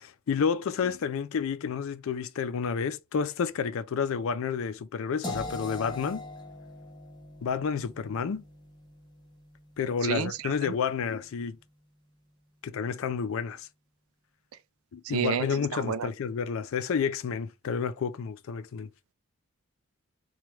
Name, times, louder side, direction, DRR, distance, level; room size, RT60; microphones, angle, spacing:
voice 1, 0.0-6.2 7.4-8.4 9.8-11.6 12.6-13.7 14.9-18.9, left 6 dB, 65° left, 0.4 m, -30 dB
sound 1, 5.2-11.1, left 2 dB, 20° left, 0.6 m, -42 dB
voice 2, 10.0-10.7 15.0-16.1, right 7 dB, 65° right, 0.4 m, -31 dB
2.9 x 2.2 x 3.1 m
head